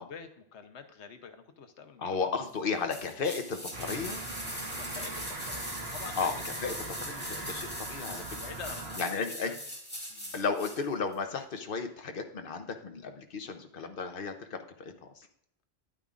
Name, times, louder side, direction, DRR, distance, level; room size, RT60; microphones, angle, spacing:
voice 1, 0.0-2.0 4.7-6.3 8.4-9.6 10.1-10.3, left 6 dB, 80° left, 8 dB, 1.2 m, -46 dB
voice 2, 2.0-4.2 6.1-6.7 7.0-8.2 9.0-9.5 10.3-15.3, left 5 dB, 55° left, 6 dB, 1.1 m, -34 dB
sound 1, 2.9-10.8 11.1-11.2, equal, 10° left, 1.8 m, -41 dB
sound 2, 3.7-9.0, right 2 dB, 65° right, 1.7 m, -41 dB
10.5 x 8.8 x 2.5 m, 0.72 s
omnidirectional pair, 1.1 m